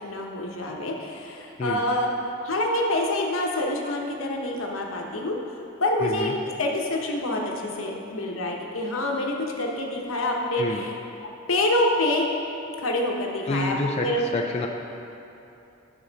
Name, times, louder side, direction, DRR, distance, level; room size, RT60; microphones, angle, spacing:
voice 1, 0.0-5.4 5.8-6.3 6.6-10.9 11.5-12.3 12.8-13.8 14.0-14.2, left 1 dB, 85° left, 0 dB, 1.0 m, -26 dB
voice 2, 6.0-6.3 10.6-10.8 13.5-14.7, left 2 dB, 30° left, 1 dB, 0.4 m, -28 dB
9.6 x 6.1 x 4.0 m, 2.9 s
head